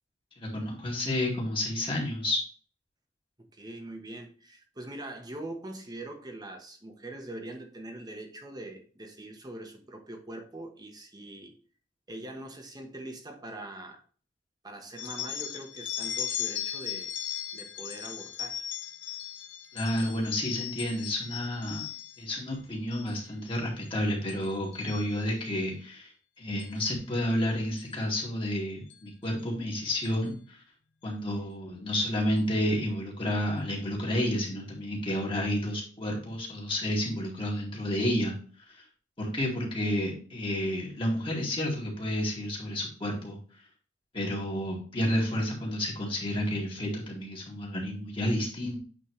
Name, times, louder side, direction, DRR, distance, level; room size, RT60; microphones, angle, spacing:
voice 1, 0.4-2.4 19.7-21.8 22.2-26.1 26.4-30.6 31.0-38.3 38.7-38.8 39.2-43.4 44.1-48.8, left 1 dB, 30° left, -2 dB, 2.4 m, -30 dB
voice 2, 3.5-11.6 12.1-14.0 14.6-17.1 17.5-18.7, right 1 dB, 20° right, 4 dB, 1.2 m, -42 dB
sound 1, 15.0-22.3 22.8-23.1 23.5-23.9 24.3-25.6 26.6-26.8 27.8-27.9 28.9-29.0 29.4-29.5 30.0-30.3, left 10 dB, 70° left, 1.0 m, -38 dB
8.7 x 4.3 x 3.2 m, 0.41 s
head